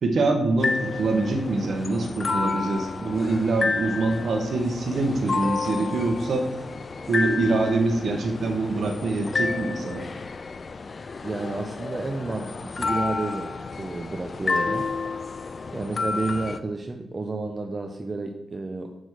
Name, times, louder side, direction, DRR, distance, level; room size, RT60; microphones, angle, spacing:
voice 1, 0.0-6.5 7.1-10.1, right 3 dB, 60° right, 4 dB, 1.2 m, -24 dB
sound 1, 0.6-16.6, left 4 dB, 35° left, 0.4 m, -30 dB
voice 2, 11.2-14.9 15.7-18.9, right 3 dB, 25° right, 4 dB, 0.5 m, -31 dB
6.2 x 5.3 x 6.3 m, 0.93 s
wide cardioid pair, 160°, 0 cm